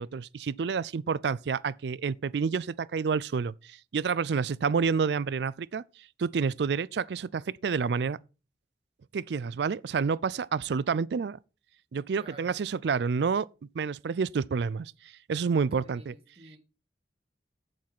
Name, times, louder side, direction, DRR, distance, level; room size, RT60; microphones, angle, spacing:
voice 1, 0.0-5.8 6.2-8.2 9.1-11.4 11.9-13.5 13.7-16.1, right 5 dB, 75° right, 0.4 m, -29 dB
voice 2, 12.1-12.6 15.7-16.6, right 1 dB, 35° right, 1.7 m, -51 dB
7.3 x 7.3 x 5.9 m
head